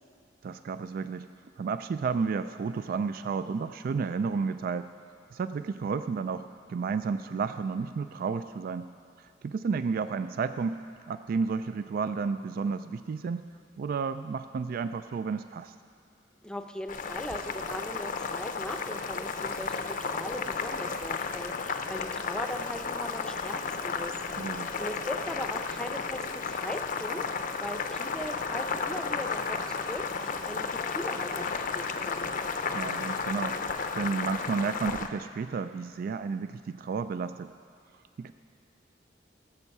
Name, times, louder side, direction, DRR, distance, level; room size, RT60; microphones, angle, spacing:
voice 1, 0.4-1.3 1.6-4.9 5.3-8.9 9.4-10.8 11.1-13.4 13.8-15.7 24.4-24.8 32.7-37.5 38.2-38.3, right 5 dB, 50° right, 11 dB, 0.3 m, -32 dB
voice 2, 16.4-24.1 24.5-27.3 27.6-32.3, left 1 dB, 5° left, 5 dB, 0.6 m, -39 dB
Boiling, 16.9-35.1, left 5 dB, 50° left, 0.6 m, -33 dB
18.5 x 7.4 x 5.4 m, 2.4 s
head